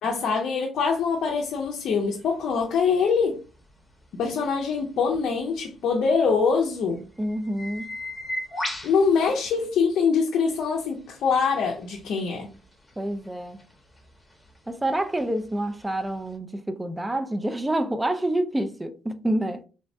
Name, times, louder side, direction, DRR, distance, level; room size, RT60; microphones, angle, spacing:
voice 1, 0.0-3.4 4.1-7.0 8.8-12.5, left 5 dB, 70° left, 0.5 m, -24 dB
sound 1, 0.8-10.0 10.5-16.4, left 1 dB, 5° left, 0.9 m, -41 dB
voice 2, 7.2-7.9 13.0-13.6 14.7-19.6, right 1 dB, 15° right, 0.4 m, -27 dB
3.3 x 2.0 x 2.6 m
cardioid pair, 90°, 0 cm